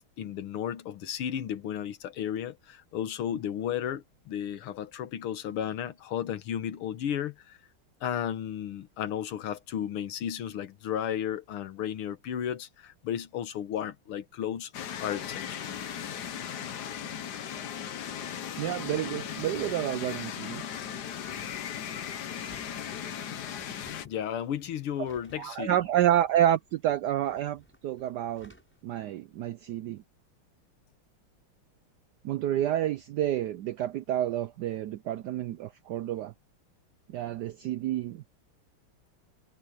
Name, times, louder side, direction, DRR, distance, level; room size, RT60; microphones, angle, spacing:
voice 1, 0.0-7.6 8.0-14.7 15.0-15.6 24.0-25.8, left 9 dB, 85° left, 2.1 m, -34 dB
sound 1, 14.7-24.1, left 9 dB, 55° left, 1.4 m, -37 dB
voice 2, 18.6-20.6 25.4-28.5 28.8-30.0 32.2-36.3 37.1-38.2, right 12 dB, 80° right, 0.9 m, -29 dB
sound 2, 22.4-28.8, equal, 5° left, 7.6 m, -59 dB
omnidirectional pair, 2.3 m